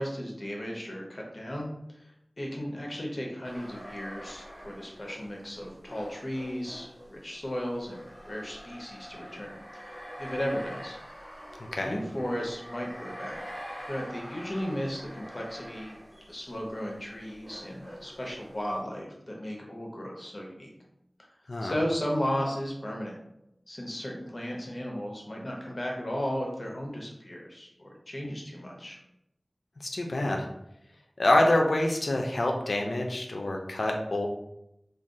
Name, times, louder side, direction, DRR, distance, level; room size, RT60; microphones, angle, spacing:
voice 1, 0.0-2.1 2.4-11.0 11.8-13.4 13.9-16.0 16.3-20.7 21.6-23.2 23.7-29.0, equal, 50° left, -1 dB, 0.8 m, -35 dB
sound 1, 3.4-18.8, equal, 10° right, 1.3 m, -45 dB
voice 2, 29.8-30.5 31.2-34.3, left 1 dB, 80° left, 2 dB, 0.3 m, -26 dB
2.5 x 2.3 x 3.7 m, 0.83 s
wide cardioid pair, 45°, 0 cm